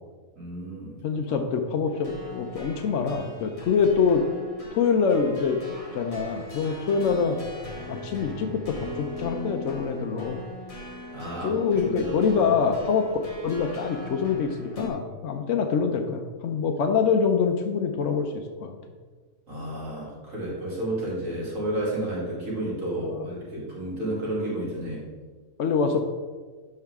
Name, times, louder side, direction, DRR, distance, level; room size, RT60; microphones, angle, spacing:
voice 1, 0.4-1.0 1.3-1.4 11.1-12.5 19.5-25.0, right 1 dB, 65° right, -6 dB, 2.8 m, -31 dB
voice 2, 1.0-4.2 4.7-5.6 5.9-7.4 7.9-10.4 11.4-13.1 13.4-18.7 23.0-23.3 25.6-26.0, left 6 dB, 65° left, 4 dB, 0.9 m, -25 dB
sound 1, 1.9-14.9, left 1 dB, 25° left, 1.6 m, -40 dB
12.0 x 4.8 x 3.6 m, 1.4 s
omnidirectional pair, 1.5 m